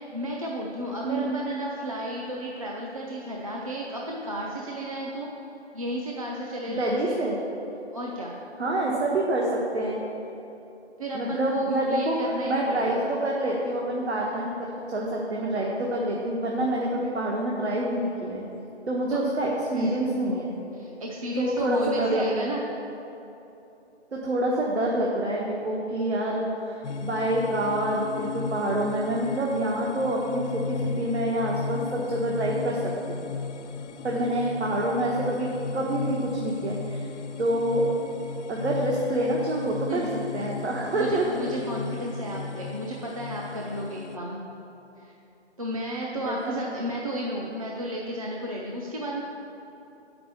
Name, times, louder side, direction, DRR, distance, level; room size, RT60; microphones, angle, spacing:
voice 1, 0.0-5.3 5.7-7.2 7.9-8.3 11.0-13.0 16.5-16.7 19.1-19.2 19.7-20.1 20.7-22.6 34.1-34.2 39.9-40.2 40.9-44.4 45.0-45.1 45.6-49.2, right 1 dB, 30° right, -3 dB, 0.6 m, -33 dB
voice 2, 1.0-1.4 6.7-7.4 8.6-10.0 11.1-18.4 18.9-20.5 21.4-22.5 24.1-33.2 34.0-37.1 37.4-37.9 38.5-40.0 40.3-41.3 46.2-46.6, right 1 dB, 70° right, -2 dB, 1.3 m, -27 dB
sound 1, 26.8-44.2, left 5 dB, 85° left, 0.6 m, -36 dB
7.2 x 5.9 x 6.9 m, 3.0 s
hypercardioid pair, 175°, 34 cm